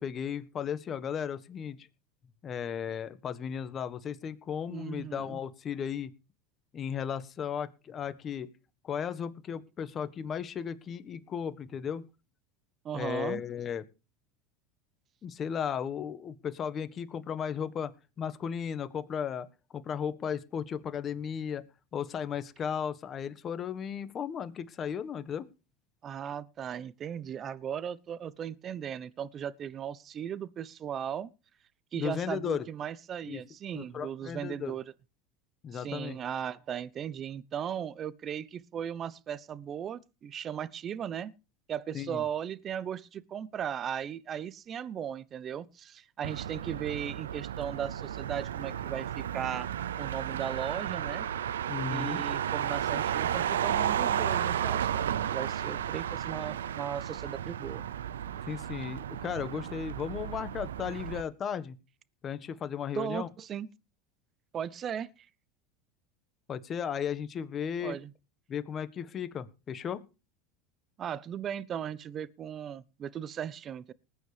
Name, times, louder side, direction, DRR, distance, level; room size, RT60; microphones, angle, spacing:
voice 1, 0.0-1.9 2.4-6.1 6.7-8.5 8.8-12.1 12.9-13.8 15.2-17.9 18.2-19.5 19.7-21.6 21.9-25.5 31.9-32.7 33.2-33.4 33.7-34.8 35.6-36.2 41.9-42.2 51.7-52.2 58.5-61.8 62.2-63.3 66.5-68.0 68.5-70.0, left 8 dB, 35° left, 1.4 m, -35 dB
voice 2, 4.7-5.4 12.8-13.4 26.0-31.3 31.9-34.8 35.7-41.3 41.7-49.7 50.0-51.3 51.9-57.9 62.9-63.7 64.5-65.1 67.8-68.1 71.0-73.9, right 9 dB, 40° right, 0.9 m, -37 dB
Motor vehicle (road), 46.2-61.2, right 10 dB, 90° right, 0.6 m, -33 dB
20.0 x 9.5 x 3.4 m
hypercardioid pair, 95°, 0 cm